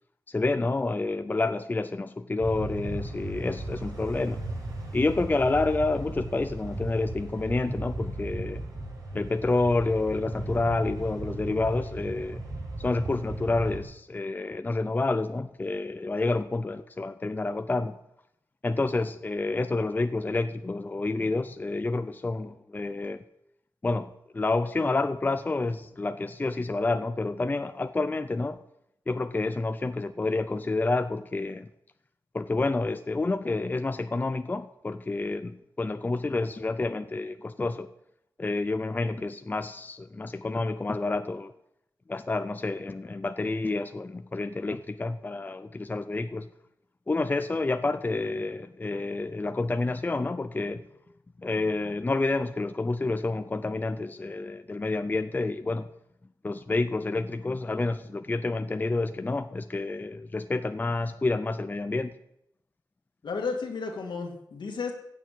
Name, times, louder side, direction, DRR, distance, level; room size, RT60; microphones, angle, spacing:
voice 1, 0.3-4.4 4.9-8.6 9.1-12.4 12.8-18.0 18.6-23.2 23.8-28.6 29.1-31.7 32.3-37.9 38.4-41.5 42.1-46.5 47.1-50.8 51.4-55.9 56.4-62.1, left 3 dB, 25° left, 10 dB, 0.6 m, -29 dB
sound 1, 2.4-13.8, right 2 dB, 50° right, 5.0 m, -36 dB
voice 2, 63.2-64.9, left 4 dB, 80° left, 3 dB, 2.4 m, -33 dB
16.0 x 7.1 x 8.6 m, 0.79 s
wide cardioid pair, 135°, 8 cm